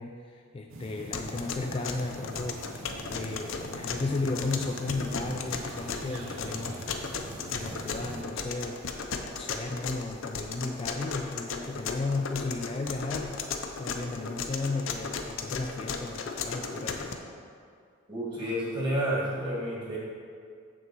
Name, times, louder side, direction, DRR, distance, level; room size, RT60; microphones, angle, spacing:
voice 1, 0.0-6.8 7.5-8.8 9.3-17.2, left 3 dB, 25° left, 2 dB, 0.3 m, -34 dB
sound 1, 0.7-8.2, right 2 dB, 70° right, 0.8 m, -43 dB
sound 2, 1.1-17.1, left 5 dB, 65° left, 0.6 m, -35 dB
voice 2, 18.1-20.0, equal, 20° right, -5 dB, 1.8 m, -30 dB
7.1 x 6.6 x 4.6 m, 2.3 s
head